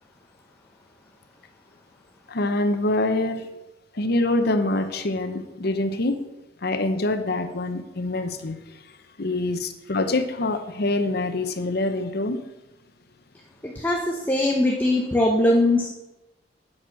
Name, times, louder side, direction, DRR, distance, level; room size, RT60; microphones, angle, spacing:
voice 1, 2.3-3.5 3.9-6.2 6.6-8.6 9.2-12.4, left 2 dB, 60° left, 8 dB, 0.9 m, -25 dB
voice 2, 13.6-14.0 14.3-15.9, left 1 dB, 10° left, 0 dB, 0.8 m, -20 dB
8.7 x 6.4 x 5.9 m, 0.97 s
head